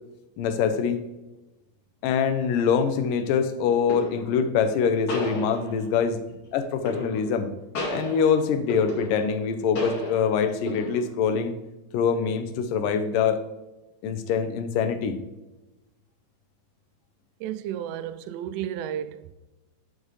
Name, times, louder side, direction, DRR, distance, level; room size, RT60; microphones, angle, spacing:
voice 1, 0.4-1.1 2.0-6.2 6.5-7.5 7.9-11.6 11.9-13.4 14.0-15.2, left 6 dB, 90° left, 2.4 m, -24 dB
sound 1, 2.4-2.6 3.9-4.4 5.1-6.0 6.9-7.4 7.7-9.5 9.8-10.3 10.7-11.3, left 2 dB, 45° left, 2.7 m, -32 dB
voice 2, 17.4-19.3, right 10 dB, 85° right, 2.2 m, -32 dB
9.5 x 6.5 x 3.2 m
omnidirectional pair, 3.8 m